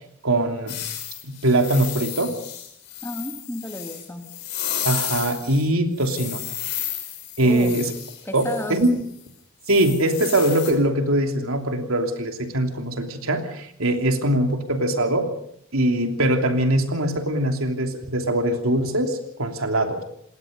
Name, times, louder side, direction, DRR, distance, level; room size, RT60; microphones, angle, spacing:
voice 1, 0.2-0.8 1.2-2.3 4.8-6.4 7.4-7.9 8.3-9.0 9.7-15.3 15.7-20.0, right 1 dB, 80° right, 5 dB, 3.0 m, -22 dB
sound 1, 0.7-5.7 6.0-8.8 9.7-10.7, left 11 dB, 55° left, 5.1 m, -33 dB
voice 2, 3.0-4.3 7.4-7.8 8.3-8.8, left 1 dB, 10° left, 6 dB, 1.9 m, -32 dB
27.0 x 20.0 x 5.3 m, 0.69 s
head